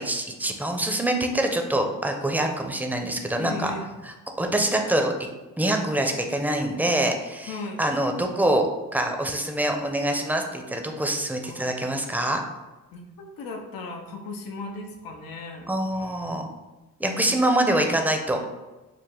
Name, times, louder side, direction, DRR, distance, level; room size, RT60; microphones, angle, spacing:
voice 1, 0.0-3.7 4.4-5.1 5.6-7.5 7.8-12.4 15.7-16.5 17.0-18.4, right 1 dB, 5° right, 3 dB, 0.6 m, -25 dB
voice 2, 3.4-4.0 7.5-7.8 11.4-11.8 12.9-16.3 17.0-17.3, left 3 dB, 90° left, 2 dB, 0.7 m, -37 dB
5.0 x 2.1 x 3.6 m, 1.1 s
cardioid pair, 60°, 34 cm